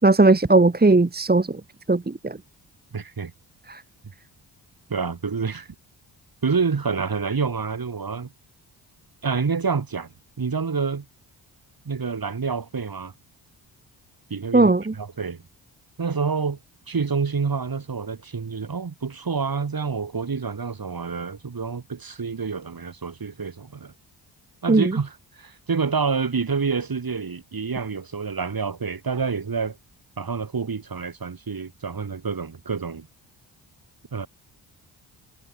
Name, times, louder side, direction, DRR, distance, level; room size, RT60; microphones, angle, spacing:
voice 1, 0.0-1.6 1.9-2.4 3.7-3.8 14.5-14.9 24.7-25.0, right 3 dB, 20° right, 1.8 m, -18 dB
voice 2, 2.9-3.3 4.9-5.7 6.4-8.3 9.2-10.1 10.4-11.1 11.9-13.1 14.3-15.4 16.0-16.6 16.9-23.9 24.6-29.8 30.2-33.1 34.1-34.3, right 5 dB, 45° right, 5.6 m, -28 dB
supercardioid pair, 45°, 49 cm